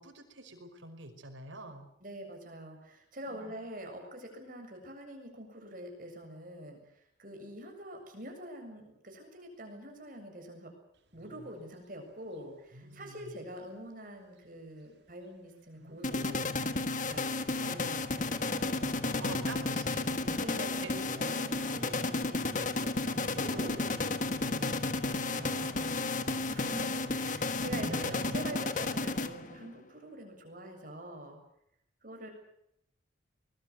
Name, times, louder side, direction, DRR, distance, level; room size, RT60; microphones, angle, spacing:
voice 1, 0.0-1.9 3.2-3.5 19.2-20.4 20.8-20.9 26.7-27.3, right 2 dB, 80° right, 5 dB, 5.5 m, -47 dB
voice 2, 2.0-10.7 11.1-17.2 17.5-18.7 20.4-25.8 26.5-31.4 32.0-32.3, right 1 dB, 45° right, 4 dB, 7.3 m, -45 dB
Wild animals, 11.1-11.5 12.7-13.4 15.8-16.7 18.4-19.5 21.0-22.0 23.5-24.6 25.4-26.2 27.5-28.5, right 1 dB, 60° right, 2.4 m, -49 dB
sound 1, 16.0-29.7, left 3 dB, 40° left, 1.5 m, -32 dB
24.5 x 21.0 x 8.0 m, 0.77 s
head